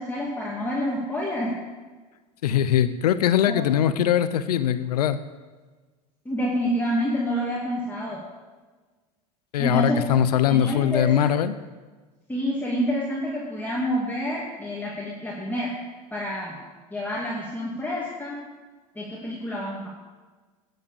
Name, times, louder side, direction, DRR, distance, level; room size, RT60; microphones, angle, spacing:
voice 1, 0.0-1.6 3.5-3.7 6.2-8.2 9.6-10.1 10.5-11.3 12.3-15.7 16.1-16.6 16.9-18.4 19.0-19.9, equal, 10° left, -5 dB, 2.4 m, -28 dB
voice 2, 2.4-5.2 9.5-11.6, left 10 dB, 80° left, 13 dB, 0.7 m, -21 dB
10.5 x 7.9 x 7.0 m, 1.3 s
hypercardioid pair, 85°, 20 cm